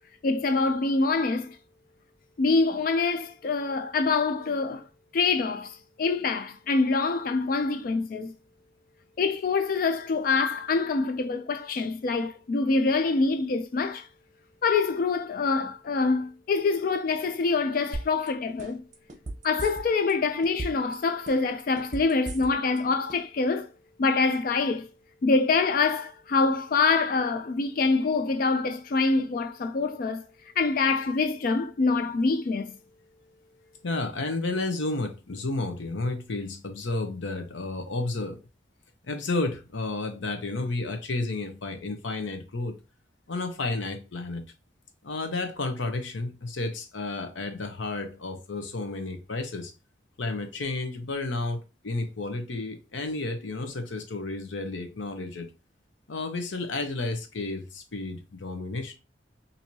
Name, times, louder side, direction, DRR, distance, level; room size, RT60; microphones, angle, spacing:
voice 1, 0.2-1.6 2.4-4.8 5.1-8.3 9.2-14.1 14.6-18.8 19.4-23.7 24.0-24.9 25.2-30.2 30.6-32.7, left 4 dB, 50° left, 0.3 m, -25 dB
sound 1, 17.9-18.3 18.6-20.1 20.4-20.9 21.3-22.8 23.1-23.2, right 2 dB, 40° right, 0.8 m, -35 dB
voice 2, 33.8-38.4 39.1-42.7 43.3-44.4 45.0-49.7 50.2-55.5 56.1-58.9, left 2 dB, 80° left, 0.7 m, -32 dB
4.5 x 2.7 x 2.7 m
head